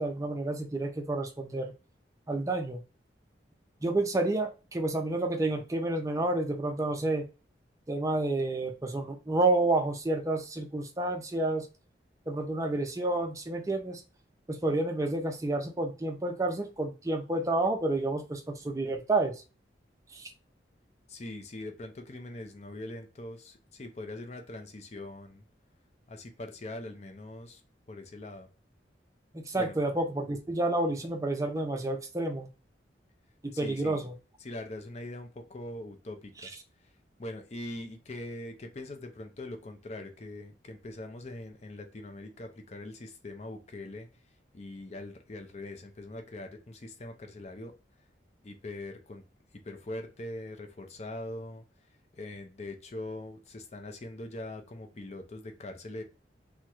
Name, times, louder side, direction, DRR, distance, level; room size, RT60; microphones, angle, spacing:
voice 1, 0.0-1.7 2.3-2.8 3.8-7.3 7.9-11.7 12.3-14.0 14.5-19.4 20.1-20.3 29.3-32.5 33.4-34.1, right 2 dB, 20° right, 5 dB, 0.4 m, -30 dB
voice 2, 21.1-25.4 26.1-27.6 27.9-28.5 29.5-29.8 33.5-34.1 34.4-36.5 36.8-36.9 37.2-44.1 44.5-47.7 48.4-49.2 49.6-51.6 52.1-56.0, left 1 dB, 40° left, 5 dB, 0.5 m, -42 dB
3.5 x 2.1 x 2.9 m, 0.31 s
head